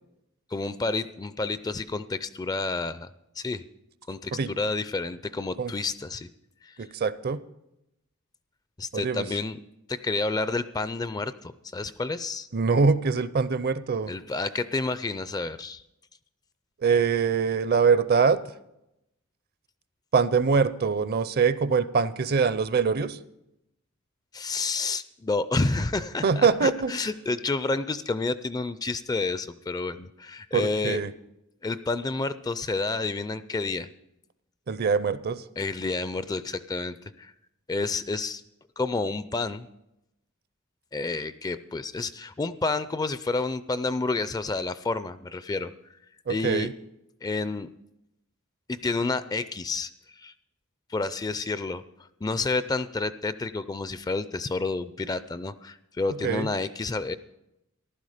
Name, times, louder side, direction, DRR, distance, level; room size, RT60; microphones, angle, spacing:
voice 1, 0.5-3.1 3.4-3.6 4.1-6.3 6.6-6.7 8.8-9.6 9.9-12.5 14.1-15.8 24.3-31.0 31.6-33.9 35.6-37.3 37.7-38.4 38.8-39.7 40.9-45.7 46.3-46.7 47.2-47.7 48.7-49.9 50.2-50.3 50.9-51.8 52.2-57.2, left 3 dB, 20° left, 14 dB, 0.4 m, -29 dB
voice 2, 6.8-7.4 8.9-9.3 12.5-14.1 16.8-18.4 20.1-23.2 26.2-26.9 30.5-31.1 34.7-35.4 46.3-46.7 56.2-56.5, right 5 dB, 50° right, 15 dB, 0.5 m, -23 dB
14.5 x 12.0 x 5.0 m, 0.86 s
head